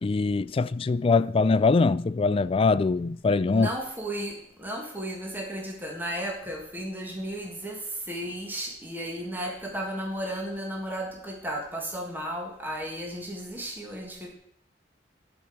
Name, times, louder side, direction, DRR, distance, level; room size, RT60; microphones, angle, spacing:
voice 1, 0.0-3.7, left 4 dB, 30° left, 0.3 m, -23 dB
voice 2, 3.4-14.3, right 1 dB, 10° right, 1.7 m, -34 dB
12.5 x 5.2 x 7.1 m
head